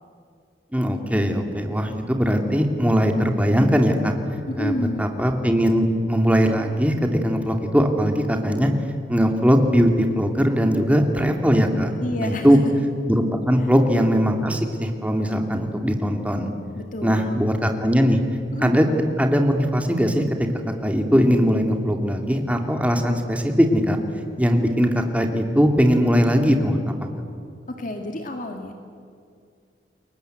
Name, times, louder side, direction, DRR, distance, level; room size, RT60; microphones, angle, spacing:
voice 1, 0.7-4.1 4.6-6.9 7.2-8.7 9.1-9.9 10.2-11.9 12.2-12.6 13.1-16.5 17.0-18.2 18.6-18.9 19.2-20.2 20.8-24.0 24.4-26.8, equal, 10° right, 4 dB, 2.5 m, -20 dB
voice 2, 4.5-5.1 12.0-12.6 13.6-13.7 16.7-17.4 18.5-18.7 27.7-28.7, left 1 dB, 45° left, 4 dB, 1.9 m, -29 dB
30.0 x 22.0 x 8.0 m, 2.4 s
head